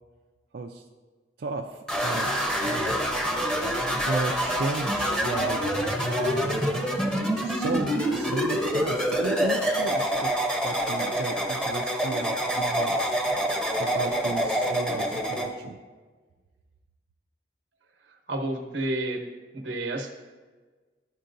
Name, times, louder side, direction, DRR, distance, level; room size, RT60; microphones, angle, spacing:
voice 1, 0.5-0.8 1.4-2.3 2.6-3.3 4.0-6.8 7.4-10.3 10.6-13.3 13.8-15.8, right 3 dB, 60° right, 1 dB, 0.4 m, -34 dB
sound 1, 1.9-15.5, equal, 5° left, 0.7 m, -26 dB
voice 2, 18.1-19.2 19.5-20.2, right 1 dB, 85° right, 3 dB, 1.0 m, -30 dB
11.0 x 4.5 x 2.6 m, 1.4 s
head